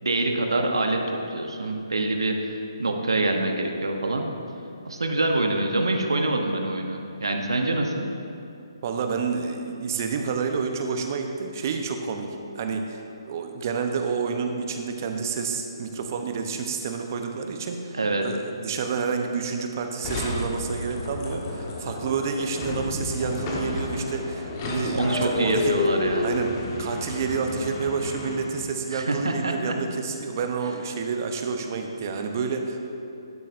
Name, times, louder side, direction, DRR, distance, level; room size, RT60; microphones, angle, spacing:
voice 1, 0.0-4.3 4.8-8.1 17.9-18.3 24.9-26.2 28.9-29.7, right 2 dB, 80° right, 3 dB, 0.9 m, -25 dB
voice 2, 8.8-12.3 12.5-13.0 13.3-25.8 26.2-32.8, right 5 dB, 40° right, 4 dB, 0.8 m, -29 dB
sound 1, 20.0-28.8, left 2 dB, 30° left, 1.3 m, -31 dB
12.0 x 9.0 x 2.6 m, 2.8 s
figure-of-eight pair, 145°, 3 cm